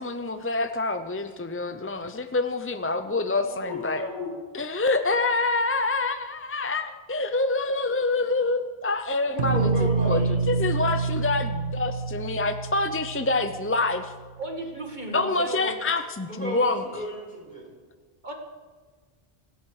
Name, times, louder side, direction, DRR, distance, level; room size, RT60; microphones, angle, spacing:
voice 1, 0.0-4.0 4.5-9.7 10.1-10.2 10.5-14.1 15.1-16.8, left 3 dB, 20° left, 8 dB, 0.4 m, -26 dB
voice 2, 3.4-4.4 9.2-10.5 16.3-17.7, equal, 55° left, -2 dB, 4.8 m, -33 dB
sound 1, 9.4-14.3, right 4 dB, 80° right, 1.3 m, -27 dB
voice 3, 14.4-15.8 18.2-18.3, right 2 dB, 45° right, 1 dB, 2.1 m, -35 dB
26.0 x 8.7 x 4.8 m, 1.4 s
omnidirectional pair, 1.1 m